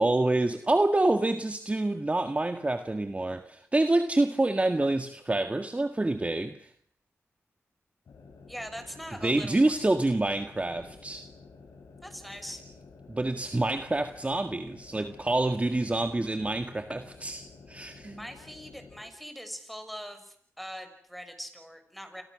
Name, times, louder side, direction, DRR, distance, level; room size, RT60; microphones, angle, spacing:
voice 1, 0.0-6.7 9.2-11.3 13.1-18.2, right 2 dB, 25° right, 8 dB, 1.8 m, -27 dB
sound 1, 8.0-19.1, left 4 dB, 90° left, 7.1 m, -51 dB
voice 2, 8.5-9.8 12.0-12.6 18.2-22.2, equal, ahead, 8 dB, 6.3 m, -42 dB
29.5 x 26.5 x 6.4 m, 0.63 s
cardioid pair, 60°, 5 cm